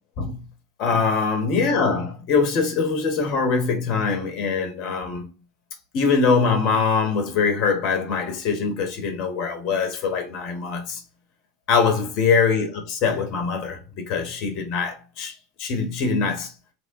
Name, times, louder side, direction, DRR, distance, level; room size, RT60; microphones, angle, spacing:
voice 1, 0.8-5.3 5.9-11.0 11.7-15.3 15.6-16.5, left 5 dB, 50° left, 0.9 m, -23 dB
3.2 x 2.1 x 2.6 m
figure-of-eight pair, 80°, 0 cm